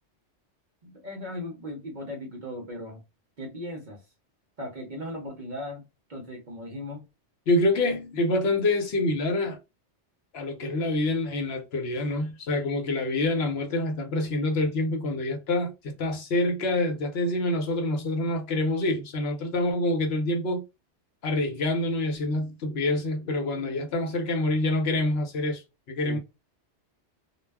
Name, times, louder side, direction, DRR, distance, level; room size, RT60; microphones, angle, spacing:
voice 1, 0.8-3.0 3.4-4.0 4.6-5.8 6.1-7.0 26.0-26.2, left 1 dB, 50° right, 0.7 m, -37 dB
voice 2, 7.5-9.6 10.3-20.6 21.2-26.2, left 2 dB, 65° left, 0.9 m, -26 dB
2.3 x 2.1 x 3.3 m
omnidirectional pair, 1.2 m